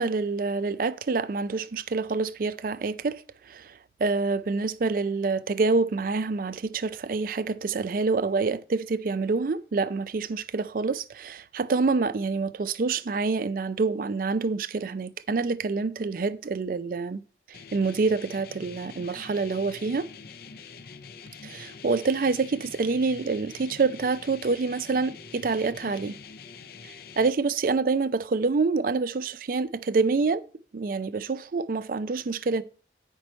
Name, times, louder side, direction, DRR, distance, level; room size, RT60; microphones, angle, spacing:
voice 1, 0.0-17.2 17.5-20.1 21.4-26.2 26.8-30.4 30.7-32.6, right 4 dB, 50° right, 0.4 m, -27 dB
sound 1, 17.5-27.3, left 5 dB, 55° left, 0.5 m, -45 dB
8.8 x 5.3 x 4.3 m
head